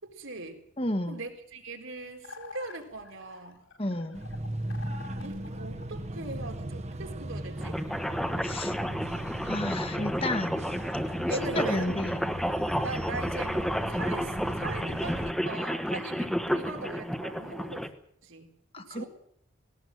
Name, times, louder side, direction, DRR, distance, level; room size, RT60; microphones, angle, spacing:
voice 1, 0.0-0.6 1.1-3.6 5.2-7.8 11.3-12.1 12.8-17.9 18.2-19.1, right 2 dB, 80° right, 3 dB, 4.1 m, -40 dB
voice 2, 0.8-1.2 3.8-4.2 8.4-8.8 9.5-10.6 11.4-12.3 18.7-19.0, left 1 dB, 30° left, 7 dB, 1.6 m, -32 dB
sound 1, 2.2-6.5, left 4 dB, 75° left, 4.6 m, -49 dB
sound 2, 4.1-15.3, right 1 dB, 35° right, 1.3 m, -37 dB
sound 3, 7.6-17.9, equal, ahead, 1.3 m, -31 dB
19.5 x 18.5 x 7.8 m, 0.68 s
head